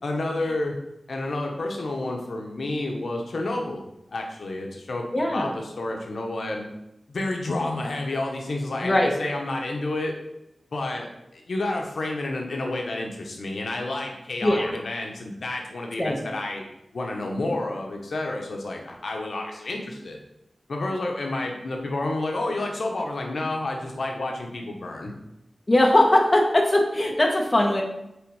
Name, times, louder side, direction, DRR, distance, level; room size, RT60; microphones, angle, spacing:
voice 1, 0.0-0.7 1.1-3.8 4.1-5.1 5.3-6.6 7.1-10.1 10.7-11.1 11.3-14.6 14.8-16.6 16.9-20.2 20.7-25.1, left 2 dB, 75° left, 1 dB, 1.1 m, -30 dB
voice 2, 5.1-5.5 8.8-9.1 14.4-14.8 16.0-16.2 25.7-27.8, left 1 dB, 25° left, 1 dB, 1.2 m, -20 dB
6.7 x 4.4 x 4.9 m, 0.87 s
wide cardioid pair, 95°, 0 cm